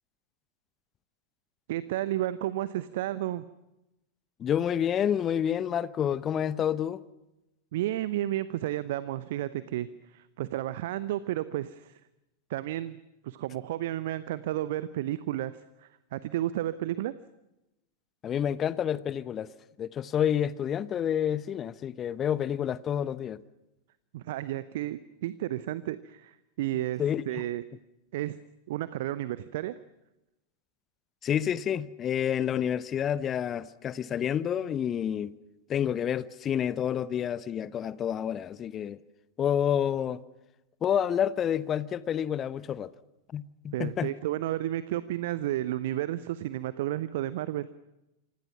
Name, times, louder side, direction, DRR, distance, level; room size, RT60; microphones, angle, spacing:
voice 1, 1.7-3.4 7.7-12.0 12.5-13.0 13.2-17.1 24.1-27.6 28.1-28.4 28.7-29.8 43.7-47.7, right 14 dB, 55° right, 0.8 m, -32 dB
voice 2, 4.4-7.0 18.2-19.5 19.8-23.4 27.0-27.2 31.2-35.3 35.7-39.0 39.4-40.2 40.8-42.9 43.3-44.1, left 9 dB, 25° left, 0.9 m, -29 dB
28.0 x 25.0 x 6.0 m
figure-of-eight pair, 90°, 0 cm